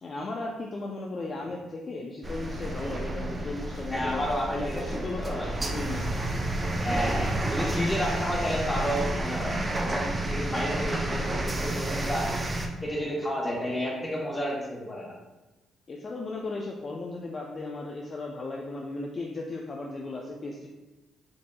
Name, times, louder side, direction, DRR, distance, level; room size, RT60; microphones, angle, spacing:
voice 1, 0.0-4.2 4.5-6.2 15.9-20.7, left 2 dB, 40° left, -1 dB, 0.4 m, -36 dB
sound 1, 2.2-12.7, right 1 dB, 25° right, 0.5 m, -30 dB
voice 2, 3.9-5.5 6.8-12.4 12.8-15.2, equal, 20° left, -2 dB, 1.0 m, -31 dB
5.3 x 2.8 x 2.2 m, 1.1 s
cardioid pair, 90°, 0 cm